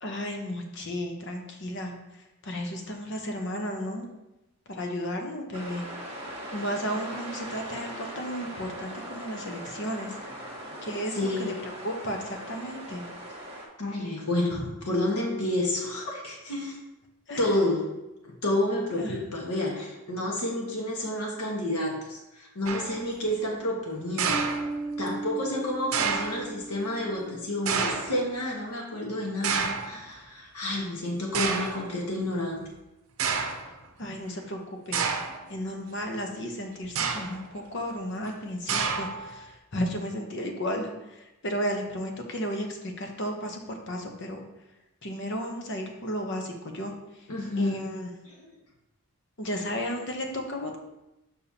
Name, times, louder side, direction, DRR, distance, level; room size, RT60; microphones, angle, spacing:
voice 1, 0.0-1.9 2.4-4.1 4.7-5.8 6.5-10.1 10.8-13.0 17.3-17.4 19.0-19.2 34.0-34.6 34.9-35.0 35.5-40.9 41.4-44.4 45.0-46.9 47.6-48.1 49.4-50.8, equal, 50° left, 3 dB, 0.9 m, -33 dB
sound 1, 5.5-13.7, right 1 dB, 25° right, 1.2 m, -40 dB
voice 2, 11.1-11.5 13.8-16.8 17.4-17.9 18.2-24.4 25.0-32.6 47.3-47.8 48.3-48.4 49.4-49.6, left 1 dB, 90° left, -1 dB, 1.5 m, -30 dB
sound 2, 22.7-23.0 24.2-25.1 25.9-26.4 27.7-28.2 29.4-30.0 30.8-30.9 31.3-31.8 32.7-32.8 33.2-33.7 34.9-35.4 36.8-37.5 38.7-39.3, right 5 dB, 70° right, 0.7 m, -29 dB
Bass guitar, 24.3-27.8, right 2 dB, 5° right, 0.5 m, -36 dB
6.9 x 5.5 x 2.8 m, 0.95 s
head